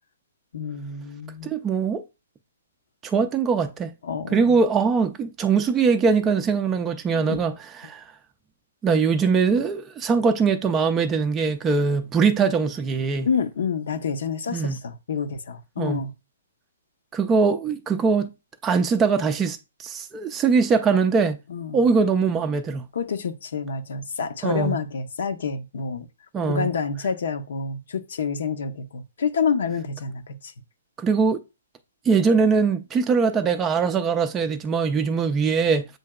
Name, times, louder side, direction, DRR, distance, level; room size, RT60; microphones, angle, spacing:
voice 1, 0.5-1.5 4.0-4.4 7.1-7.4 13.2-16.1 21.5-21.8 22.9-26.1 26.4-30.5, left 6 dB, 70° left, 0.7 m, -28 dB
voice 2, 1.4-2.0 3.0-3.9 4.3-7.5 7.8-8.1 8.8-13.3 14.5-14.8 15.8-16.0 17.1-18.3 18.6-21.4 21.7-22.9 24.4-24.8 26.3-26.7 31.0-31.4 32.1-35.9, right 5 dB, 15° right, 0.4 m, -22 dB
7.6 x 2.8 x 2.2 m
hypercardioid pair, 135°, 0 cm